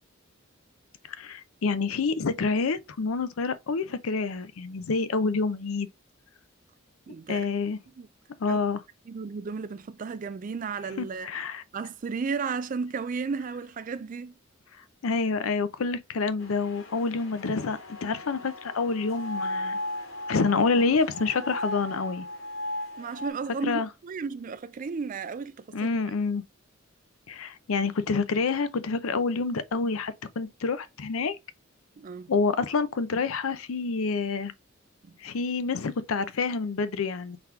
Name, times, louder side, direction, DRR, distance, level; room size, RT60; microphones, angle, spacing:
voice 1, 1.1-5.9 7.3-7.8 8.4-8.8 11.0-11.6 15.0-19.8 20.3-22.3 23.6-23.9 25.7-26.4 27.3-31.4 32.3-34.5 35.2-37.4, left 4 dB, 90° left, 0.6 m, -27 dB
voice 2, 7.1-7.5 8.0-8.1 8.5-8.6 9.1-11.3 11.7-14.3 23.0-25.9 32.0-32.3 35.0-35.2, right 5 dB, 40° right, 0.3 m, -34 dB
sound 1, 16.4-23.3, left 1 dB, 65° left, 1.3 m, -36 dB
4.0 x 2.9 x 3.3 m
head